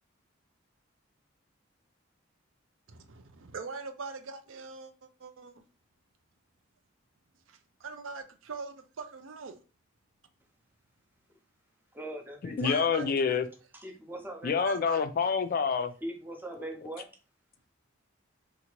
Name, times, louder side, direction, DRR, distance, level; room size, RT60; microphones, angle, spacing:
voice 1, 2.9-5.6 7.5-9.6 12.6-13.1 14.5-15.0, right 4 dB, 80° right, 0.5 m, -42 dB
voice 2, 11.9-13.1 13.7-14.6 16.0-17.1, right 1 dB, 10° right, 0.5 m, -41 dB
voice 3, 12.4-13.4 14.4-15.9, left 6 dB, 45° left, 0.3 m, -27 dB
2.8 x 2.4 x 2.9 m
head